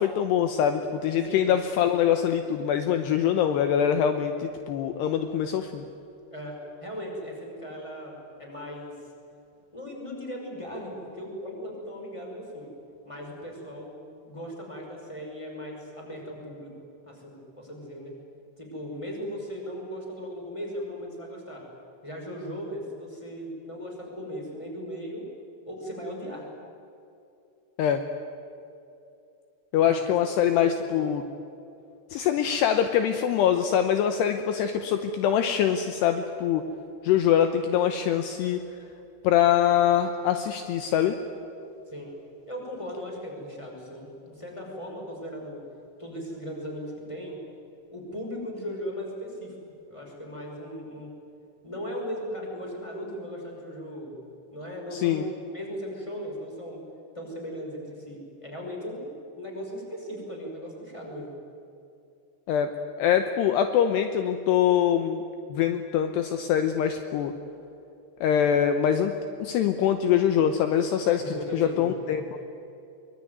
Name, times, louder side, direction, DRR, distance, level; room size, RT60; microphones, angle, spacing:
voice 1, 0.0-5.9 27.8-28.0 29.7-31.2 32.1-36.6 37.0-38.6 39.2-41.2 54.9-55.3 62.5-62.7 63.0-67.3 68.2-69.1 69.4-72.2, left 9 dB, 75° left, 7 dB, 2.9 m, -24 dB
voice 2, 6.3-8.9 9.7-12.7 13.0-13.9 14.2-16.7 17.0-18.1 18.6-21.6 22.0-25.2 25.7-26.5 29.7-31.0 41.9-42.2 42.5-45.6 46.0-47.4 47.9-49.5 49.9-51.1 51.6-54.1 54.5-56.8 57.1-61.3 71.2-72.2, equal, 5° left, 0 dB, 5.3 m, -38 dB
23.5 x 23.0 x 9.5 m, 2.7 s
omnidirectional pair, 5.2 m